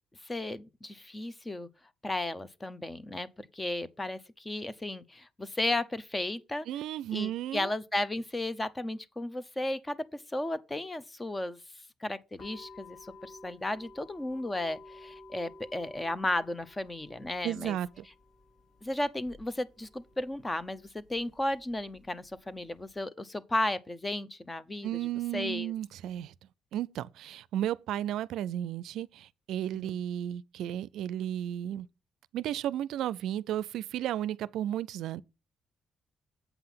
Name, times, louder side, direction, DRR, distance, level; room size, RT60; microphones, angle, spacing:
voice 1, 0.2-1.7 2.0-6.7 7.1-11.6 12.0-17.8 18.8-25.7 29.7-30.0, left 1 dB, 20° left, 0.8 m, -34 dB
voice 2, 6.7-7.7 17.4-18.0 24.8-26.3 26.7-31.9 32.3-35.2, right 11 dB, 85° right, 0.4 m, -34 dB
sound 1, 12.4-23.0, left 3 dB, 75° left, 6.7 m, -54 dB
8.1 x 5.7 x 5.7 m
cardioid pair, 90°, 0 cm